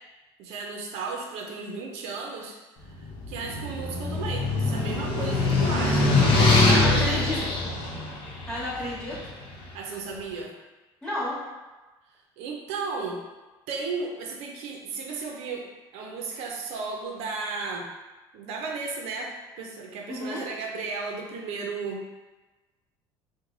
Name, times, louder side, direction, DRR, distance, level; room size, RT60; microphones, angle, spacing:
voice 1, 0.4-2.6 3.3-7.6 9.7-10.5 12.4-13.2 13.7-15.7 15.9-17.9 18.3-22.0, right 4 dB, 75° right, 0 dB, 0.5 m, -34 dB
sound 1, 3.0-9.3, left 2 dB, 55° left, 0.7 m, -23 dB
voice 2, 6.7-7.6 8.5-9.3 11.0-11.4 20.1-20.4, left 1 dB, 10° left, -9 dB, 1.3 m, -31 dB
3.1 x 2.1 x 3.7 m, 1.2 s
cardioid pair, 135°, 11 cm